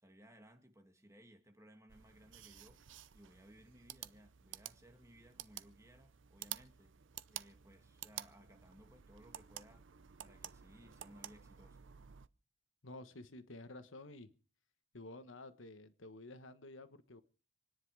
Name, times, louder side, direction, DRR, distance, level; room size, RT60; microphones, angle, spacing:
voice 1, 0.0-2.8 3.1-6.9 7.3-9.9 10.2-11.8, equal, 15° right, 2.0 m, -61 dB
sound 1, 1.9-12.3, right 11 dB, 70° right, 0.7 m, -51 dB
voice 2, 12.8-14.3 14.9-17.2, left 2 dB, 80° left, 1.3 m, -51 dB
26.5 x 10.5 x 4.8 m
head